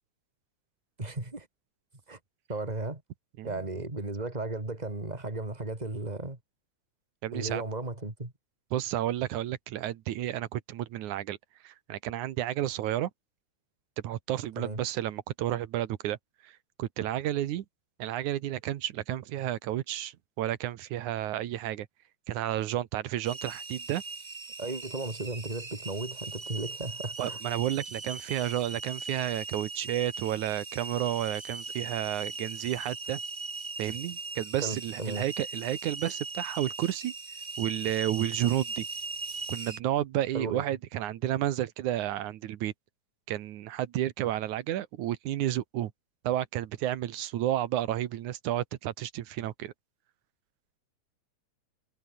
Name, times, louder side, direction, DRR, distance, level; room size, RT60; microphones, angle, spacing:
voice 1, 1.0-1.5 2.1-2.2 2.5-3.0 3.4-6.4 7.3-8.3 14.6-14.8 24.6-27.4 34.6-35.3 40.3-40.6, right 2 dB, 15° right, 3.8 m, -35 dB
voice 2, 7.2-7.6 8.7-11.4 11.6-13.1 14.0-16.2 16.4-16.5 16.8-17.7 18.0-21.9 22.3-24.0 27.2-33.2 33.8-37.1 37.6-38.9 39.5-42.7 43.3-45.9 46.2-49.7, right 13 dB, 80° right, 2.6 m, -31 dB
sound 1, 23.2-39.8, right 4 dB, 50° right, 0.5 m, -39 dB
omnidirectional pair, 3.4 m